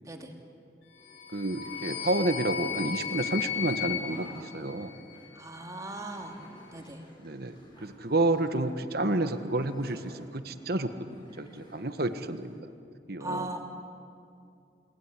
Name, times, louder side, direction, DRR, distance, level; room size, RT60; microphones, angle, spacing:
sound 1, 1.0-5.3, left 9 dB, 80° left, 3.6 m, -35 dB
sound 2, 1.0-12.6, equal, 25° left, 6.9 m, -54 dB
voice 1, 1.3-4.9 7.2-12.6 13.1-13.5, right 2 dB, 60° right, 9 dB, 1.5 m, -30 dB
voice 2, 5.4-6.4 6.7-7.0 13.2-13.6, right 2 dB, 20° right, 2 dB, 2.7 m, -38 dB
29.5 x 19.5 x 9.9 m, 2.5 s
head